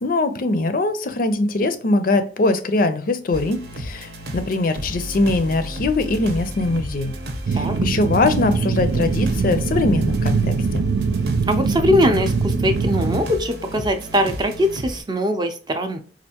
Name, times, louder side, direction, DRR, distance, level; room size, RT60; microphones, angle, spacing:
voice 1, 0.0-7.1 7.5-10.9, left 2 dB, 50° left, 10 dB, 0.5 m, -22 dB
sound 1, 3.3-15.0, right 1 dB, 65° right, 0.8 m, -32 dB
sound 2, 7.5-13.2, right 4 dB, 80° right, 0.4 m, -22 dB
voice 2, 11.5-16.0, equal, 25° right, 6 dB, 0.5 m, -21 dB
4.4 x 2.4 x 2.8 m, 0.39 s
head